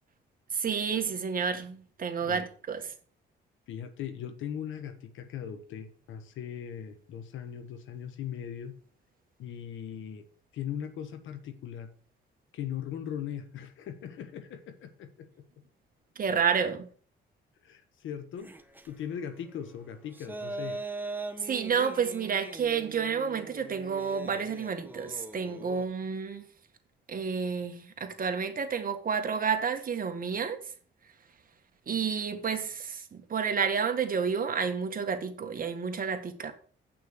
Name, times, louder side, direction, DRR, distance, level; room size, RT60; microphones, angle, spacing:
voice 1, 0.5-2.9 16.2-16.9 21.4-26.5 27.1-30.6 31.9-36.5, right 6 dB, 45° right, 1.8 m, -30 dB
voice 2, 3.7-8.7 9.4-10.2 10.5-11.9 12.5-15.4 17.6-18.5 18.9-20.8, left 9 dB, 80° left, 1.5 m, -39 dB
sound 1, 18.4-18.9 19.9-25.9, right 2 dB, 10° right, 1.1 m, -41 dB
8.7 x 6.1 x 6.3 m
cardioid pair, 90°, 20 cm